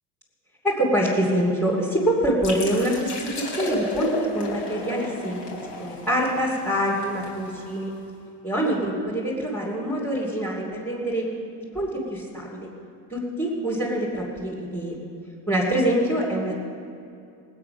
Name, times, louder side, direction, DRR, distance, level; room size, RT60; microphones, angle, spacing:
voice 1, 0.6-5.4 5.8-7.9 8.4-11.2 11.7-12.7 13.1-14.9 15.5-16.5, right 1 dB, 5° left, -7 dB, 2.9 m, -25 dB
sound 1, 2.4-8.0, left 3 dB, 60° left, 4.0 m, -33 dB
18.0 x 8.9 x 6.0 m, 2.5 s
supercardioid pair, 115°, 44 cm